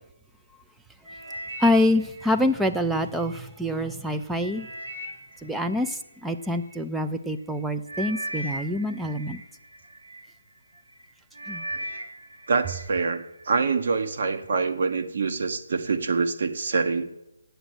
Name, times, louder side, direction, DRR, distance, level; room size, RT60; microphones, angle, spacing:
sound 1, 1.0-3.4 3.9-6.8 7.5-7.6 7.9-10.2 10.8-11.0 11.3-12.9 13.2-13.7 14.3-14.4, right 1 dB, 85° right, 3.9 m, -38 dB
voice 1, 1.6-4.7 5.4-5.9 6.2-9.4 11.5-11.6, left 1 dB, 5° right, 7 dB, 0.4 m, -25 dB
voice 2, 12.5-17.1, right 4 dB, 55° right, 8 dB, 1.2 m, -25 dB
8.1 x 7.6 x 8.0 m, 0.87 s
hypercardioid pair, 165°, 0 cm